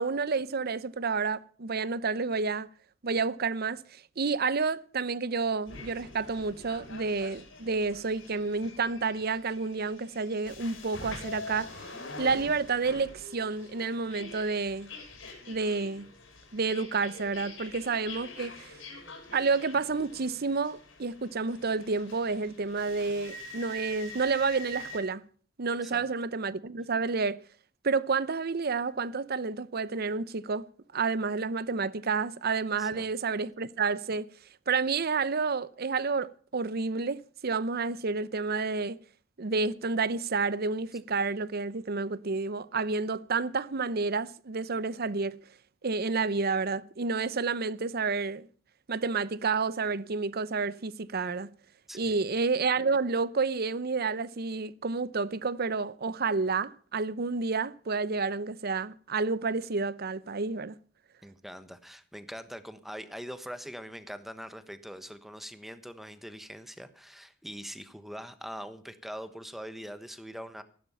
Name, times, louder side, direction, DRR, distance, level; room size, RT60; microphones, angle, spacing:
voice 1, 0.0-2.7 3.0-11.9 12.2-14.9 15.5-16.1 16.5-18.8 19.3-25.2 25.6-27.4 27.8-30.7 30.9-34.3 34.7-39.0 39.4-45.4 45.8-48.5 48.9-51.5 51.9-60.7, right 4 dB, 55° right, 0.7 m, -30 dB
sound 1, 5.7-25.0, left 2 dB, 75° left, 4.8 m, -45 dB
voice 2, 61.2-70.6, equal, ahead, 1.2 m, -43 dB
15.0 x 12.0 x 5.7 m
head